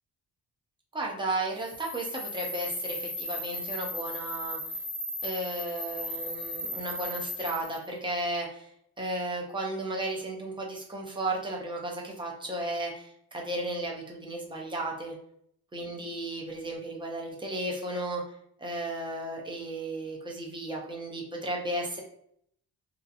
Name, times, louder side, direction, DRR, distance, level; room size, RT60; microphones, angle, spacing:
voice 1, 0.9-4.6 5.2-8.7 9.0-15.2 15.7-18.2 18.6-22.0, right 1 dB, 15° right, -2 dB, 0.4 m, -34 dB
sound 1, 1.6-7.9, left 1 dB, 30° left, 0.6 m, -36 dB
2.7 x 2.3 x 2.4 m, 0.69 s
wide cardioid pair, 155°, 39 cm